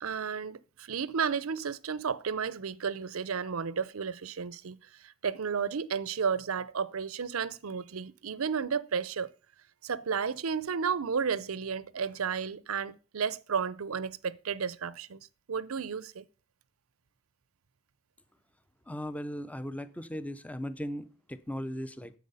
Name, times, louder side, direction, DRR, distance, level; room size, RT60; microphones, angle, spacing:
voice 1, 0.0-9.3 9.8-15.2 15.5-16.2, right 6 dB, 75° right, 0.6 m, -33 dB
voice 2, 18.9-22.1, equal, 5° left, 0.6 m, -37 dB
10.5 x 7.9 x 5.5 m
head